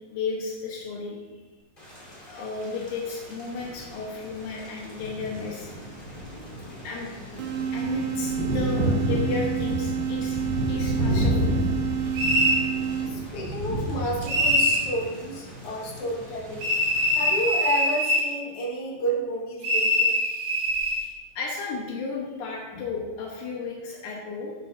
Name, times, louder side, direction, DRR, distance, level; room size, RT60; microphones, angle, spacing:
voice 1, 0.1-1.2 2.3-5.7 6.8-7.1 7.7-10.4 10.7-11.6 21.4-24.5, left 4 dB, 85° left, -2 dB, 2.6 m, -33 dB
Thunder / Rain, 1.8-17.4, equal, 20° left, 2.1 m, -32 dB
sound 1, 7.4-13.4, right 9 dB, 80° right, 2.0 m, -29 dB
sound 2, 12.2-12.6 14.3-14.9 16.6-18.3 19.6-21.0, equal, 55° right, 2.4 m, -23 dB
voice 2, 13.1-16.7 17.1-20.2, equal, 55° left, -2 dB, 2.3 m, -31 dB
11.0 x 8.3 x 2.7 m, 1.3 s
omnidirectional pair, 3.4 m